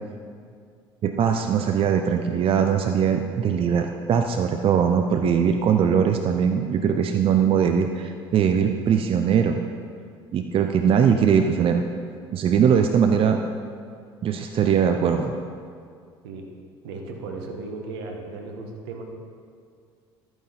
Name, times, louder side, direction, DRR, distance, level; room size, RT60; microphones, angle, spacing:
voice 1, 1.0-9.6 10.3-11.8 12.3-13.4 14.2-15.3, right 7 dB, 45° right, 6 dB, 0.7 m, -21 dB
voice 2, 16.8-19.0, right 3 dB, 75° right, 2 dB, 1.5 m, -35 dB
13.0 x 9.0 x 4.3 m, 2.2 s
hypercardioid pair, 65°, 13 cm